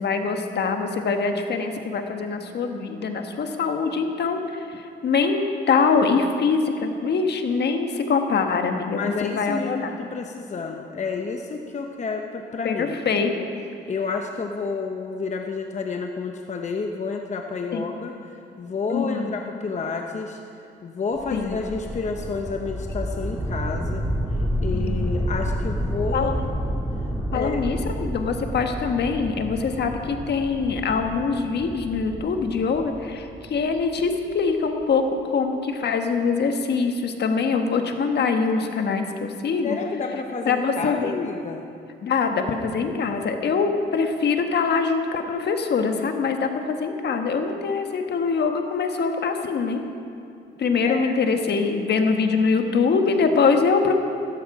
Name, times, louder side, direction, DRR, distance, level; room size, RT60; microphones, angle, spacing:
voice 1, 0.0-10.1 12.6-13.3 17.7-17.9 18.9-19.3 21.3-21.6 24.7-25.1 26.1-26.4 27.3-39.8 40.4-41.1 42.0-49.8 50.6-53.9, left 5 dB, 55° left, 5 dB, 1.4 m, -23 dB
voice 2, 8.9-13.0 13.9-18.1 18.6-20.4 20.8-24.0 24.6-26.3 27.3-27.6 39.6-41.6 50.8-51.1, left 4 dB, 35° left, 3 dB, 0.9 m, -30 dB
sound 1, 21.2-34.2, equal, ahead, 1.9 m, -29 dB
15.0 x 13.5 x 4.9 m, 2.5 s
cardioid pair, 90°, 20 cm